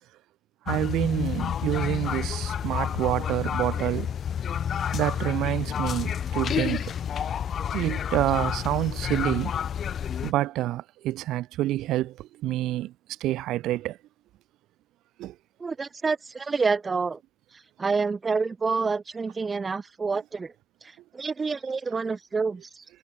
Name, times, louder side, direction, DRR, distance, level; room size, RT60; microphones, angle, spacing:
sound 1, 0.7-10.3, left 8 dB, 60° left, 2.1 m, -29 dB
voice 1, 0.7-4.1 4.9-6.8 7.7-9.6 10.2-12.9 13.2-14.0 15.2-15.3, right 15 dB, 90° right, 1.8 m, -27 dB
voice 2, 15.6-17.2 17.8-20.5 20.8-22.8, right 4 dB, 35° right, 1.0 m, -28 dB
cardioid pair, 90°, 0 cm